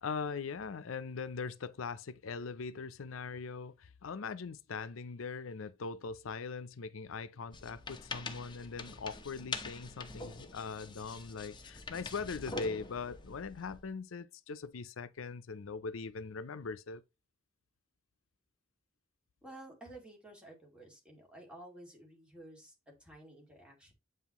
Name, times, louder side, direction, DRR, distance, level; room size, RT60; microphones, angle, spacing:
voice 1, 0.0-17.0, left 5 dB, 85° left, 0.5 m, -41 dB
sound 1, 7.5-13.9, left 3 dB, 25° left, 0.9 m, -44 dB
voice 2, 19.4-23.9, right 1 dB, 5° right, 2.3 m, -52 dB
8.0 x 5.5 x 3.0 m
head